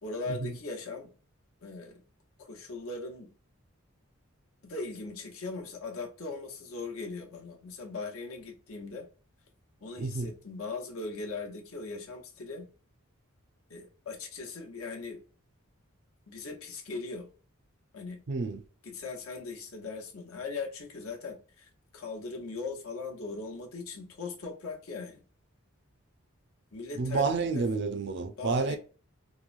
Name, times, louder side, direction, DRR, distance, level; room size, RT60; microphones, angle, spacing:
voice 1, 0.0-1.1 1.6-2.0 2.4-3.3 4.6-9.1 9.8-12.7 13.7-15.2 16.3-17.3 17.9-18.2 18.8-21.7 21.9-25.2 26.7-27.6 28.4-28.8, left 3 dB, 85° left, 0.8 m, -39 dB
voice 2, 10.0-10.3 18.3-18.6 27.0-28.8, right 4 dB, 55° right, 0.4 m, -30 dB
3.0 x 2.0 x 2.4 m
head